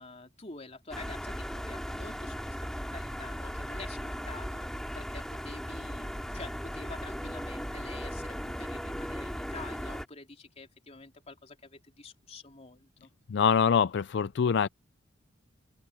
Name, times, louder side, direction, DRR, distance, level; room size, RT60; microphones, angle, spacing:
voice 1, 0.0-4.7 4.9-13.1, left 3 dB, 35° left, 3.6 m, -47 dB
sound 1, 0.9-10.1, equal, 5° left, 4.2 m, -37 dB
voice 2, 13.3-14.7, left 6 dB, 60° left, 0.4 m, -24 dB
open air
head